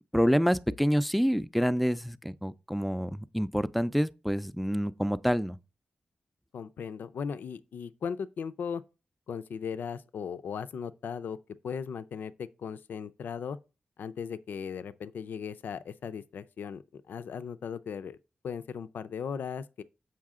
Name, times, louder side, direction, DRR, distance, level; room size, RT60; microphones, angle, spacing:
voice 1, 0.1-5.6, equal, ahead, 0.4 m, -27 dB
voice 2, 6.5-8.8 9.3-11.4 11.6-13.6 14.0-18.2 18.4-19.8, left 6 dB, 90° left, 0.4 m, -37 dB
7.5 x 5.6 x 3.6 m
wide cardioid pair, 90°, 3 cm